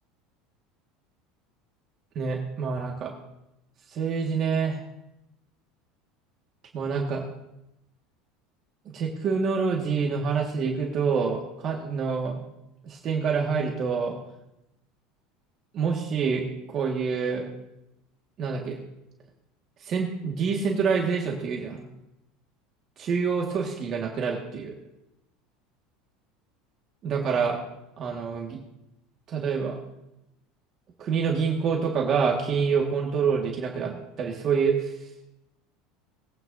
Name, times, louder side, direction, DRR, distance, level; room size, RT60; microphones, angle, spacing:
voice 1, 2.2-3.1 3.9-4.8 6.7-7.2 8.9-12.4 12.8-14.2 15.7-17.5 18.4-18.8 19.8-21.8 23.0-24.7 27.0-27.6 28.0-28.6 29.3-29.8 31.0-34.9, right 5 dB, 35° right, 0 dB, 1.6 m, -27 dB
21.0 x 9.1 x 2.6 m, 0.89 s
cardioid pair, 155°, 0 cm